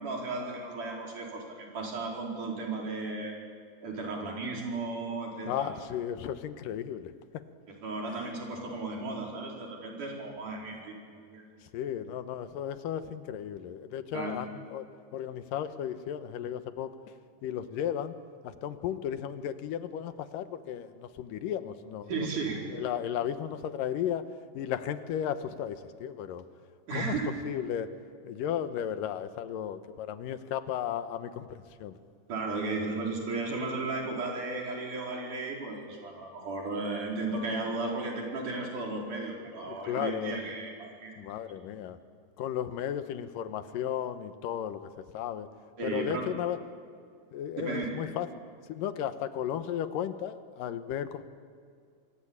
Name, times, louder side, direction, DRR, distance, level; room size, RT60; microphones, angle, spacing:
voice 1, 0.0-3.3 3.8-5.7 7.8-11.5 14.1-14.3 22.1-22.6 26.9-27.3 32.3-41.2 45.8-46.2 47.6-47.9, right 3 dB, 65° right, -1 dB, 6.0 m, -35 dB
voice 2, 5.5-7.1 8.1-8.3 11.6-14.9 15.1-17.1 17.4-18.2 18.4-22.1 22.7-24.3 24.5-26.5 26.9-27.2 27.5-27.9 28.2-32.0 39.6-40.5 41.2-42.0 42.4-45.5 45.8-46.6 47.3-48.3 48.7-51.2, left 10 dB, 85° left, 10 dB, 2.8 m, -34 dB
27.0 x 22.0 x 8.8 m, 2.2 s
omnidirectional pair, 3.8 m